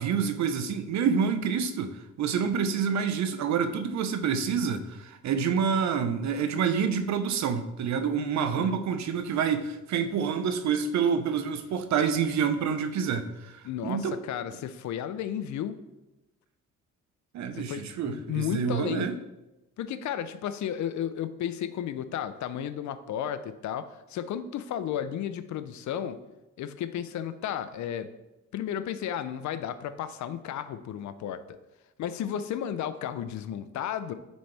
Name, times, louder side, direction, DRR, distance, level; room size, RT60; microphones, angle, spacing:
voice 1, 0.0-14.2 17.3-19.2, right 6 dB, 65° right, 9 dB, 0.7 m, -28 dB
voice 2, 8.3-8.8 13.6-15.7 17.5-19.1 19.8-26.2 26.6-28.1 28.5-31.4 32.0-34.1, left 9 dB, 70° left, 12 dB, 0.6 m, -33 dB
9.3 x 4.2 x 3.3 m, 1.0 s
cardioid pair, 90°, 30 cm